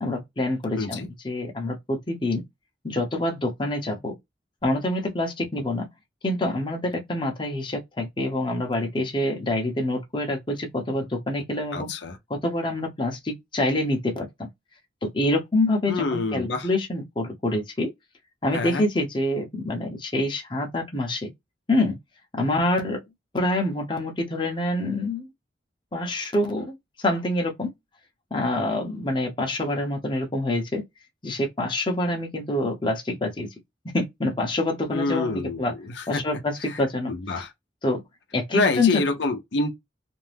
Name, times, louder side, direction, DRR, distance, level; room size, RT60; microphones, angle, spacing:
voice 1, 0.0-2.4 2.8-4.1 4.6-5.9 6.2-11.9 12.3-14.3 15.0-17.9 18.4-21.3 21.7-22.0 22.3-23.0 23.3-25.3 25.9-27.7 28.3-30.8 31.2-33.5 33.9-35.7 36.1-37.1 37.8-38.0 38.3-39.0, left 1 dB, 25° left, 0.7 m, -26 dB
voice 2, 0.8-1.1 11.7-12.2 15.9-16.7 18.5-18.8 34.9-36.2 36.7-36.8 37.1-37.5 38.5-39.7, left 3 dB, 90° left, 0.6 m, -27 dB
2.6 x 2.2 x 3.3 m
head